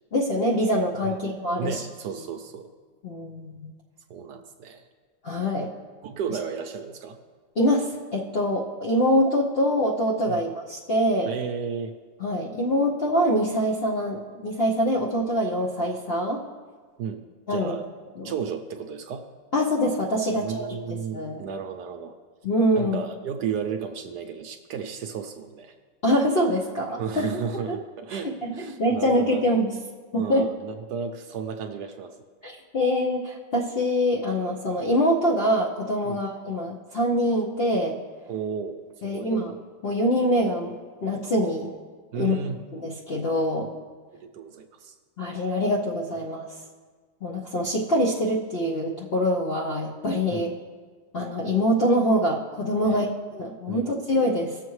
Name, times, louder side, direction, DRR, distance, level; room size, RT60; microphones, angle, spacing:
voice 1, 0.1-1.8 3.0-3.7 5.2-5.7 7.6-11.3 12.2-16.4 17.5-17.8 18.2-18.3 19.5-20.7 21.1-21.5 22.4-23.0 26.0-27.3 27.7-27.8 28.1-28.5 28.8-29.7 30.1-30.5 32.4-38.0 39.0-39.5 39.8-40.8 41.0-41.7 42.1-42.4 42.7-43.7 45.2-46.5 47.2-50.5 51.1-54.6, equal, 60° left, -3 dB, 0.6 m, -24 dB
voice 2, 1.6-2.7 4.1-4.9 6.0-7.2 10.3-10.5 11.3-12.0 17.0-17.2 17.5-17.9 18.2-19.3 20.3-22.1 22.8-25.7 27.0-29.6 30.1-32.2 36.0-36.2 38.3-39.3 42.1-42.6 44.2-44.9 50.3-50.5 52.8-53.1 53.7-54.0, right 6 dB, 70° right, 6 dB, 1.0 m, -33 dB
17.5 x 6.9 x 3.1 m, 1.5 s
omnidirectional pair, 2.1 m